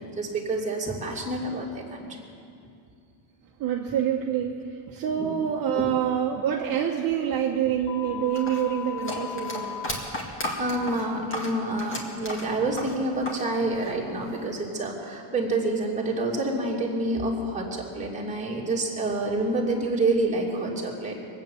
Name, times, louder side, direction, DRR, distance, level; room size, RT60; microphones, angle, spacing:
voice 1, 0.0-2.1 5.2-5.3 5.8-5.9 10.6-21.2, right 2 dB, 15° right, -4 dB, 2.5 m, -28 dB
voice 2, 3.6-9.8, right 9 dB, 45° right, -1 dB, 1.1 m, -26 dB
sound 1, 7.9-9.9, left 8 dB, 60° left, 1.5 m, -36 dB
sound 2, 8.3-13.5 13.7-14.6, left 1 dB, 25° left, 2.0 m, -34 dB
22.5 x 8.8 x 7.1 m, 2.4 s
cardioid pair, 165°, 49 cm